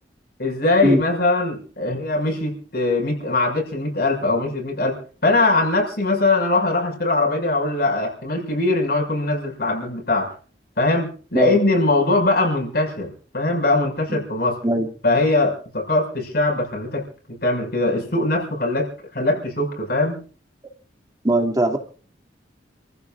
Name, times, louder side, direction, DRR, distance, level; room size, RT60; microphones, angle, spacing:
voice 1, 0.4-10.3 10.8-14.5 15.0-18.9 19.1-20.2, left 2 dB, 55° left, 1 dB, 6.0 m, -21 dB
voice 2, 21.2-21.8, right 1 dB, 20° right, 3 dB, 2.5 m, -19 dB
30.0 x 16.0 x 2.5 m, 0.40 s
head